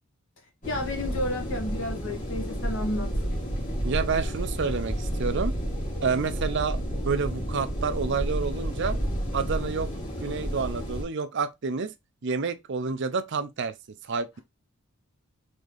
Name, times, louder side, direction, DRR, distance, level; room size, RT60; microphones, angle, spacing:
sound 1, 0.6-11.0, equal, 35° left, 2.2 m, -31 dB
voice 1, 0.7-3.1, left 1 dB, 60° left, 1.7 m, -31 dB
voice 2, 3.8-5.5 6.0-6.8 7.0-9.0 9.3-9.9 10.2-11.9 12.2-13.7 14.0-14.4, right 5 dB, 55° right, 0.5 m, -29 dB
4.1 x 3.6 x 3.3 m
head